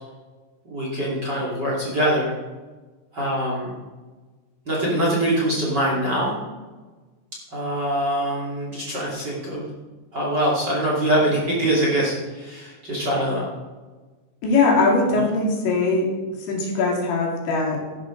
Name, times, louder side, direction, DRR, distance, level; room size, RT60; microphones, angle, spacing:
voice 1, 0.6-2.3 3.1-3.7 4.7-6.3 7.5-9.7 10.1-13.5 15.1-15.2, right 1 dB, 30° right, -4 dB, 2.3 m, -23 dB
voice 2, 14.4-16.1 16.4-17.8, left 3 dB, 90° left, -2 dB, 4.8 m, -21 dB
13.0 x 11.0 x 3.8 m, 1.3 s
omnidirectional pair, 5.0 m